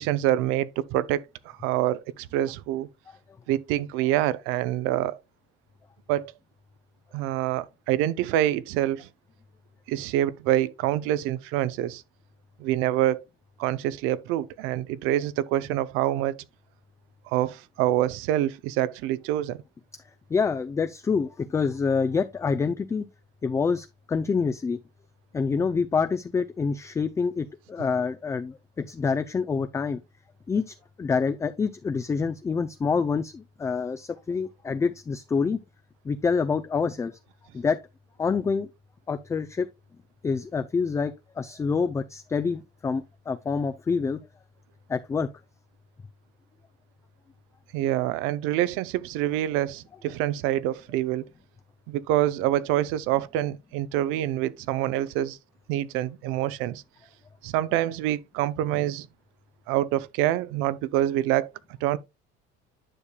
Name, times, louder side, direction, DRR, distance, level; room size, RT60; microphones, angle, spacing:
voice 1, 0.0-2.9 3.5-5.2 6.1-6.3 7.1-9.1 9.9-12.0 12.6-13.2 13.6-16.4 17.3-19.6 47.7-51.2 51.9-55.4 55.7-56.8 57.4-59.1 59.7-61.5 61.8-62.0, right 13 dB, 80° right, 0.6 m, -26 dB
voice 2, 20.3-23.1 23.4-24.8 25.3-30.0 30.5-35.6 36.0-37.2 37.5-37.8 38.2-38.7 39.1-39.7 40.2-44.2 44.9-45.3, left 5 dB, 15° left, 0.3 m, -27 dB
10.0 x 6.6 x 2.2 m
cardioid pair, 140°, 21 cm